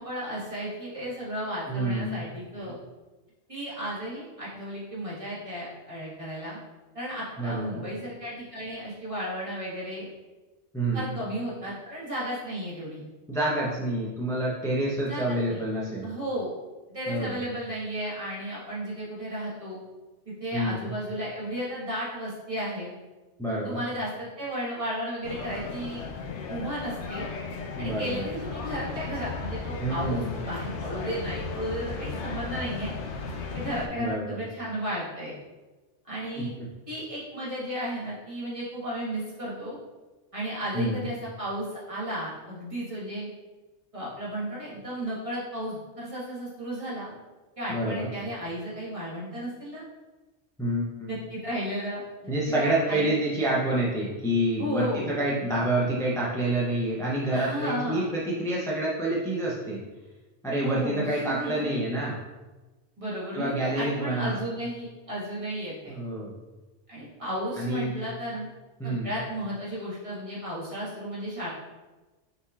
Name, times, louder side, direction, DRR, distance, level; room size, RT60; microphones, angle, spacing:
voice 1, 0.0-2.7 3.5-6.6 6.9-10.1 10.9-13.1 15.1-15.6 16.0-16.5 16.9-19.8 20.2-22.9 23.6-26.0 26.5-27.3 27.8-32.9 33.5-35.3 36.0-36.5 36.9-39.8 40.3-43.3 43.9-47.1 47.6-49.8 51.1-53.1 54.6-55.2 57.3-58.3 60.6-61.8 63.0-65.9 66.9-68.5 68.8-71.5, equal, 30° right, -8 dB, 1.4 m, -34 dB
voice 2, 1.7-2.2 7.4-7.8 10.7-11.1 13.3-16.1 17.1-17.4 20.5-20.9 23.4-23.8 27.8-28.2 29.8-30.3 34.0-34.4 36.4-36.7 40.7-41.1 47.7-48.1 50.6-51.1 52.3-59.8 60.4-62.2 63.3-64.3 65.9-66.3 67.6-68.0 68.8-69.1, right 1 dB, 5° left, -5 dB, 0.3 m, -28 dB
sound 1, 25.2-33.9, left 4 dB, 75° left, 0.8 m, -35 dB
5.5 x 3.2 x 2.4 m, 1.2 s
omnidirectional pair, 1.2 m